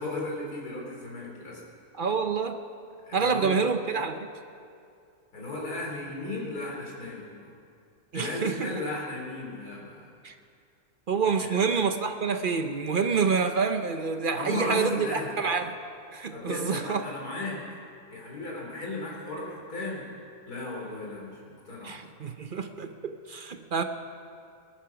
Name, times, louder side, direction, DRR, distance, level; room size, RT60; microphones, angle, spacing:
voice 1, 0.0-1.6 3.0-3.6 5.3-7.5 8.1-10.1 11.4-11.6 14.3-15.4 16.3-17.6 18.1-20.0 20.5-22.0, left 2 dB, 75° left, -2 dB, 3.9 m, -35 dB
voice 2, 1.9-2.6 3.1-4.3 8.1-8.7 10.2-10.4 11.1-15.8 16.1-17.0 21.8-23.8, right 5 dB, 50° right, 7 dB, 0.6 m, -27 dB
20.5 x 12.0 x 5.9 m, 2.4 s
omnidirectional pair, 1.7 m